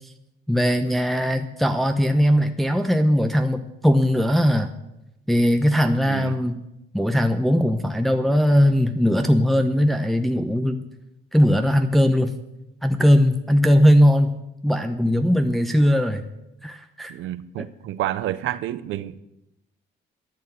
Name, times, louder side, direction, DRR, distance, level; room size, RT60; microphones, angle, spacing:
voice 1, 0.5-4.7 5.3-6.6 6.9-10.8 11.3-12.3 12.8-14.4 14.6-16.3 16.6-17.1 17.6-17.7, equal, ahead, 0.9 m, -19 dB
voice 2, 6.1-6.4 17.1-19.2, right 13 dB, 85° right, 0.7 m, -29 dB
13.5 x 8.3 x 7.3 m
cardioid pair, 90°, 20 cm